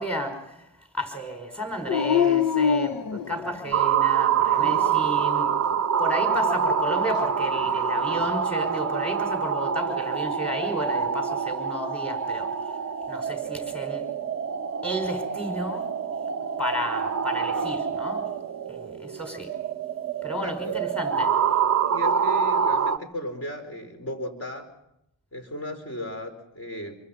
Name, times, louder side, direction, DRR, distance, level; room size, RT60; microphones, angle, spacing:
voice 1, 0.0-14.1 14.8-15.9 16.6-18.3 18.7-19.5 20.2-21.4, equal, 5° left, 4 dB, 5.5 m, -32 dB
Dog, 1.9-3.8 4.4-5.2 7.5-8.3, left 8 dB, 50° left, 0.9 m, -26 dB
sound 1, 3.7-23.0, right 7 dB, 35° right, 0.9 m, -26 dB
voice 2, 20.4-20.7 21.9-24.7 25.3-27.0, left 1 dB, 30° left, 5 dB, 4.6 m, -36 dB
26.0 x 24.0 x 5.7 m, 0.82 s
cardioid pair, 135°, 45 cm